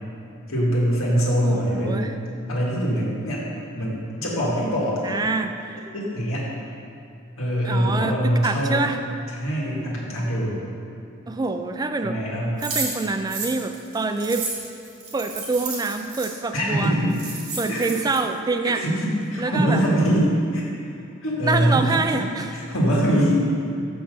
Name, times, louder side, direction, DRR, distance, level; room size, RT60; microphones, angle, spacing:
voice 1, 0.5-2.1 2.5-3.4 3.8-5.2 5.9-6.5 7.4-8.9 9.3-10.6 12.0-12.6 16.5-17.1 17.7-17.8 18.6-20.6 21.2-21.9 22.5-23.3, equal, 75° left, -5 dB, 1.8 m, -23 dB
voice 2, 1.4-2.1 5.0-5.9 7.6-9.0 11.3-12.2 12.6-14.5 15.1-16.9 17.6-18.8 19.4-19.8 21.4-22.5, right 3 dB, 20° right, 7 dB, 0.3 m, -26 dB
sound 1, 12.6-16.3 16.8-16.9 17.1-18.2, right 3 dB, 85° right, 1.9 m, -32 dB
5.9 x 5.4 x 6.5 m, 2.6 s
head